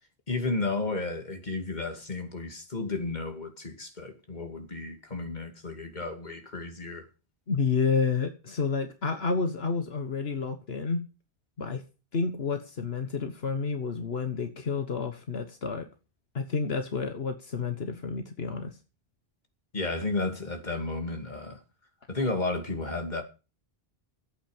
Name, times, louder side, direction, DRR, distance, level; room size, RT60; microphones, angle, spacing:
voice 1, 0.3-7.1 19.7-21.6 22.1-23.2, left 3 dB, 45° left, 2.6 m, -32 dB
voice 2, 7.5-11.0 11.6-11.8 12.1-15.9 16.3-18.8, left 5 dB, 75° left, 1.6 m, -30 dB
14.0 x 8.7 x 7.1 m
omnidirectional pair, 1.0 m